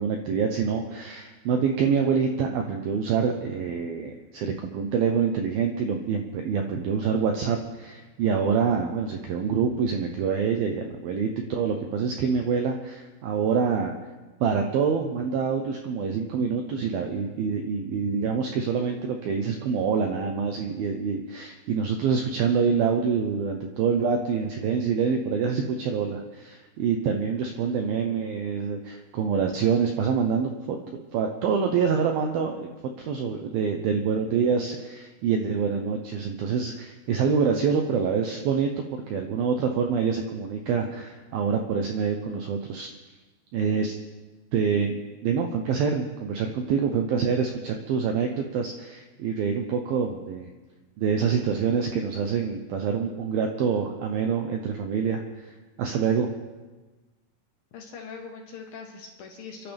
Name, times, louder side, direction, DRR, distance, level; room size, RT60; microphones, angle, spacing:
voice 1, 0.0-14.0 14.4-30.8 31.1-42.9 43.5-43.9 44.5-44.9 45.2-50.5 51.0-56.3, right 6 dB, 80° right, 3 dB, 2.2 m, -26 dB
voice 2, 57.7-59.7, left 5 dB, 65° left, 1 dB, 2.7 m, -41 dB
29.5 x 11.5 x 3.5 m, 1.2 s
omnidirectional pair, 5.5 m